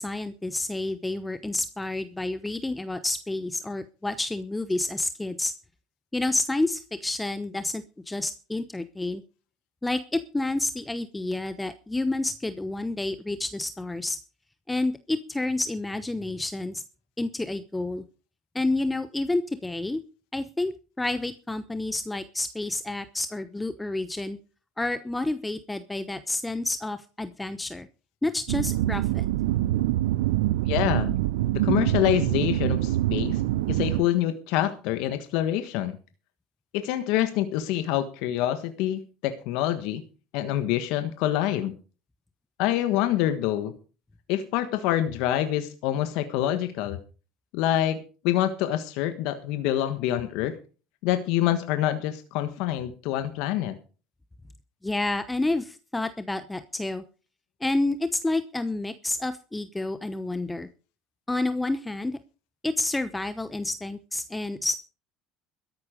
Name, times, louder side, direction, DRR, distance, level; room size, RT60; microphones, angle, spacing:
voice 1, 0.0-5.5 6.1-9.2 9.8-14.2 14.7-16.8 17.2-18.0 18.5-20.0 20.3-20.7 21.0-24.4 24.8-27.9 28.2-29.3 54.8-57.0 57.6-60.7 61.3-62.2 62.6-64.8, left 2 dB, 10° left, 11 dB, 0.9 m, -29 dB
sound 1, 28.5-34.0, right 15 dB, 85° right, 0.6 m, -25 dB
voice 2, 30.7-31.1 31.5-33.4 33.7-36.0 36.7-40.0 40.3-41.7 42.6-43.7 44.3-47.0 47.5-50.6 51.0-53.8, left 12 dB, 70° left, 9 dB, 1.4 m, -26 dB
13.5 x 10.5 x 5.2 m, 0.37 s
supercardioid pair, 85°, 0 cm